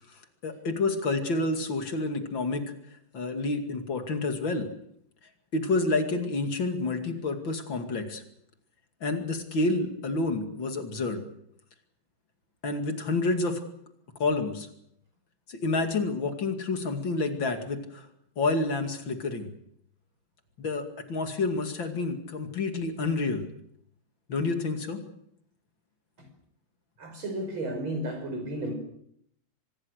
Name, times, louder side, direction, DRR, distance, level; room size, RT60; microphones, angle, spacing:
voice 1, 0.4-2.7 3.1-4.7 5.5-8.2 9.0-11.2 12.6-13.6 14.2-14.7 15.5-18.1 18.4-19.5 20.6-23.5 24.3-25.0, left 3 dB, 65° left, 6 dB, 3.2 m, -29 dB
voice 2, 27.0-28.7, right 1 dB, 70° right, 5 dB, 6.2 m, -33 dB
25.0 x 20.5 x 6.6 m, 0.72 s
omnidirectional pair, 2.3 m